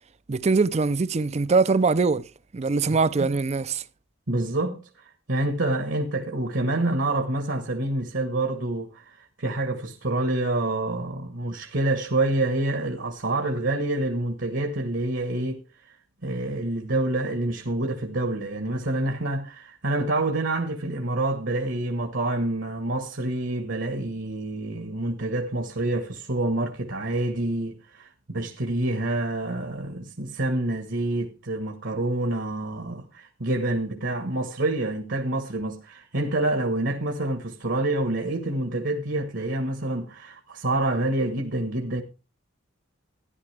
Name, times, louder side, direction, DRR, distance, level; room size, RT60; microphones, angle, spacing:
voice 1, 0.3-2.3 2.5-3.8, right 4 dB, 35° right, 0.5 m, -22 dB
voice 2, 4.3-15.6 16.2-42.0, right 2 dB, 65° right, 1.4 m, -27 dB
14.0 x 11.0 x 3.3 m
head